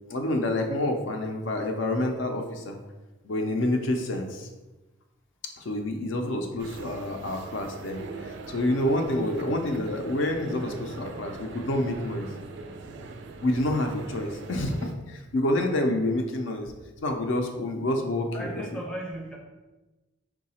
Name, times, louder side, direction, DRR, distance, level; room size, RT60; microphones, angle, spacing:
voice 1, 0.1-2.8 3.2-4.5 5.6-12.3 13.4-16.7 17.0-18.6, left 1 dB, 70° left, 3 dB, 0.5 m, -28 dB
sound 1, 6.6-14.9, right 3 dB, 65° right, 0.4 m, -41 dB
voice 2, 18.3-19.4, right 1 dB, 5° left, -1 dB, 0.5 m, -36 dB
4.7 x 2.3 x 4.1 m, 1.1 s
head